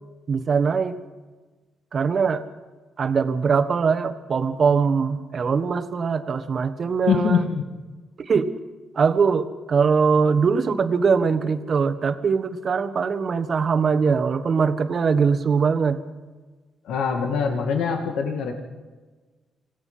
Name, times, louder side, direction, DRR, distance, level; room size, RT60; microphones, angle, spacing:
voice 1, 0.3-1.0 1.9-2.4 3.0-7.5 8.2-8.5 8.9-16.0, right 5 dB, 50° right, 10 dB, 1.5 m, -21 dB
voice 2, 7.1-7.6 16.8-18.5, left 6 dB, 85° left, 4 dB, 2.2 m, -23 dB
27.0 x 17.5 x 5.7 m, 1.3 s
cardioid pair, 85°, 0 cm